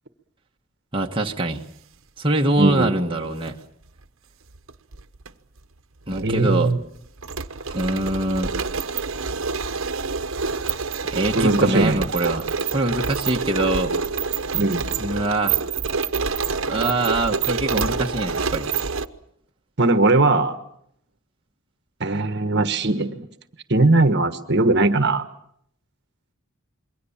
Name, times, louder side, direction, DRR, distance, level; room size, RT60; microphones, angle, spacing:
voice 1, 0.9-1.6 2.2-3.6 6.1-6.7 7.7-8.6 11.1-13.9 15.0-15.6 16.6-18.7, right 2 dB, 25° right, 0 dB, 1.4 m, -23 dB
voice 2, 2.6-2.9 6.1-6.8 11.3-12.0 14.5-14.8 19.8-20.6 22.0-23.3 23.7-25.2, right 2 dB, 50° right, 9 dB, 1.4 m, -19 dB
sound 1, 3.2-3.5 4.5-5.3 5.6-5.7 6.1-19.1, right 5 dB, 70° right, 1.1 m, -27 dB
27.0 x 22.5 x 7.3 m, 0.71 s
head